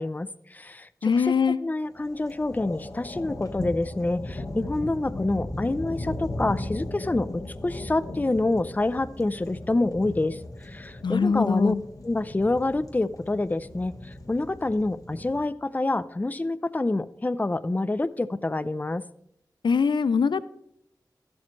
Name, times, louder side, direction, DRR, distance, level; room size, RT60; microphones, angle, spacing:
voice 1, 0.0-1.3 1.6-11.7 12.0-19.0, left 2 dB, 20° left, 15 dB, 0.4 m, -27 dB
voice 2, 1.0-1.6 11.0-11.8 19.6-20.4, left 5 dB, 90° left, 16 dB, 0.4 m, -22 dB
sound 1, 1.9-15.4, left 1 dB, 50° left, 1.4 m, -37 dB
13.5 x 11.5 x 3.2 m, 0.74 s
wide cardioid pair, 85°, 8 cm